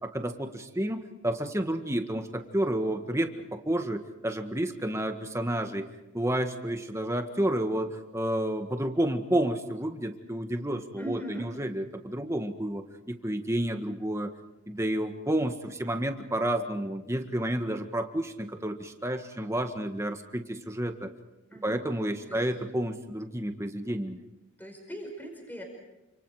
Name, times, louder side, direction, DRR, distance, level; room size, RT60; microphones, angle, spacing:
voice 1, 0.0-14.3 14.7-21.1 21.6-24.2, right 1 dB, 15° right, 6 dB, 1.6 m, -30 dB
voice 2, 11.0-11.5 21.5-21.8 22.3-22.4 24.6-25.6, right 1 dB, 10° left, 1 dB, 5.3 m, -40 dB
29.0 x 27.0 x 5.0 m, 1.0 s
head